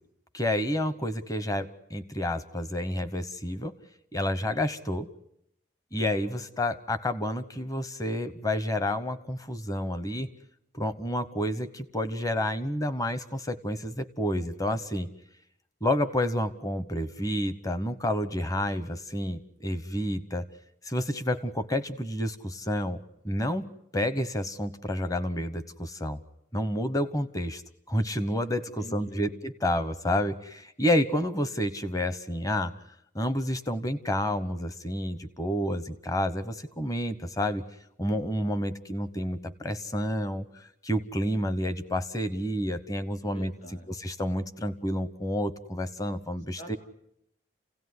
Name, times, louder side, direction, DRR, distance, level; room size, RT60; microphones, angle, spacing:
voice 1, 0.3-3.8 4.1-5.1 5.9-10.3 10.8-15.1 15.8-20.5 20.8-26.2 26.5-27.6 27.9-32.7 33.1-37.6 38.0-43.5 43.9-46.8, left 1 dB, 20° left, 12 dB, 1.0 m, -29 dB
voice 2, 28.8-29.4 43.2-43.9 46.6-46.8, equal, 35° left, 5 dB, 3.8 m, -45 dB
29.0 x 17.0 x 9.6 m, 0.78 s
head